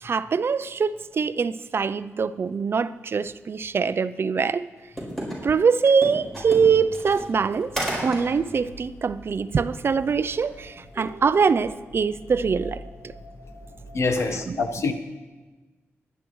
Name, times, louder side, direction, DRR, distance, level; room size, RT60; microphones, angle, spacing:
voice 1, 0.0-4.7 5.4-7.7 8.0-12.8 14.2-14.6, right 5 dB, 55° right, 0.4 m, -23 dB
sound 1, 5.0-5.3 5.8-8.3 8.7-8.8 10.4-10.6 10.9-11.1, right 1 dB, 5° left, 4.6 m, -31 dB
sound 2, 6.2-14.4, equal, 25° left, 2.9 m, -45 dB
voice 2, 13.9-14.9, left 4 dB, 70° left, 1.0 m, -25 dB
22.5 x 10.0 x 3.1 m
wide cardioid pair, 85°, 5 cm